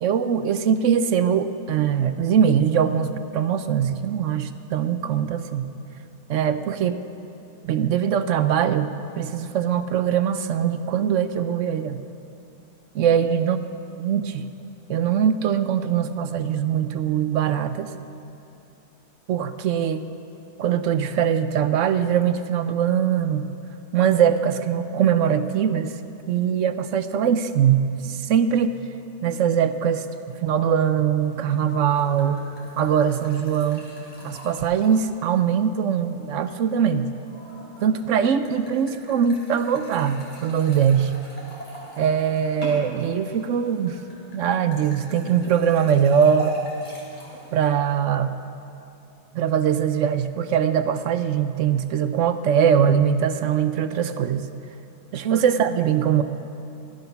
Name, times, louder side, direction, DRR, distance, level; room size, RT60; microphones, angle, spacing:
voice 1, 0.0-5.7 6.3-7.0 7.6-8.9 9.2-12.0 12.9-13.6 14.0-14.5 14.9-17.9 19.3-20.0 20.6-23.5 23.9-25.9 26.3-28.7 29.2-30.1 30.4-32.4 32.8-33.9 34.2-37.1 37.8-41.1 42.0-44.0 44.3-46.6 47.5-48.4 49.3-54.5 55.1-56.2, right 8 dB, 65° right, 11 dB, 0.8 m, -22 dB
sound 1, 31.2-47.7, right 1 dB, 30° left, 3.0 m, -43 dB
15.5 x 12.5 x 5.7 m, 2.7 s
omnidirectional pair, 1.7 m